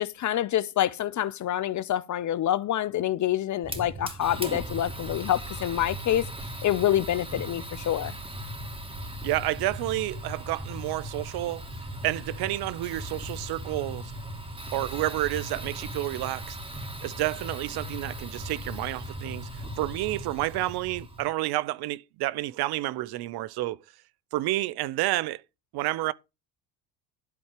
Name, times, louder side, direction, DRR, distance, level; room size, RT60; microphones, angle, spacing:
voice 1, 0.0-6.3 6.6-8.1, left 12 dB, 40° left, 0.8 m, -27 dB
Fire, 3.6-21.3, right 1 dB, 10° right, 2.8 m, -38 dB
voice 2, 9.2-11.6 12.0-14.1 14.7-16.6 17.0-19.5 19.8-23.8 24.3-25.4 25.7-26.1, right 17 dB, 55° right, 0.7 m, -30 dB
12.0 x 4.3 x 6.6 m
hypercardioid pair, 75°, 45 cm